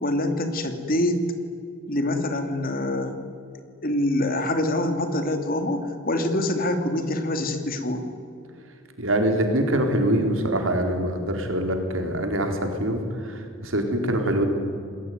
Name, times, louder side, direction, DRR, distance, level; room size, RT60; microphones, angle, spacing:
voice 1, 0.0-1.2 1.9-3.2 3.8-8.1, left 1 dB, 45° left, 7 dB, 2.8 m, -25 dB
voice 2, 9.0-14.4, right 1 dB, 85° right, 4 dB, 4.2 m, -24 dB
28.0 x 20.5 x 9.6 m, 2.4 s
head